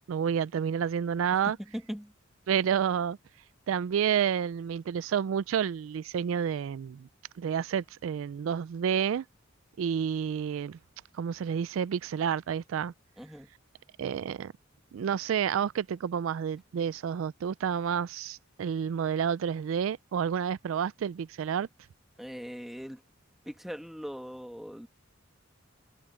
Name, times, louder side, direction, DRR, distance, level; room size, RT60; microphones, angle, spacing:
voice 1, 0.1-1.6 2.5-3.2 3.7-7.1 7.4-9.2 9.8-10.8 11.2-12.9 14.0-14.5 14.9-21.7, right 8 dB, 80° right, 0.3 m, -29 dB
voice 2, 1.5-2.1 13.2-13.5 22.2-23.0 23.5-24.9, equal, ahead, 1.8 m, -40 dB
head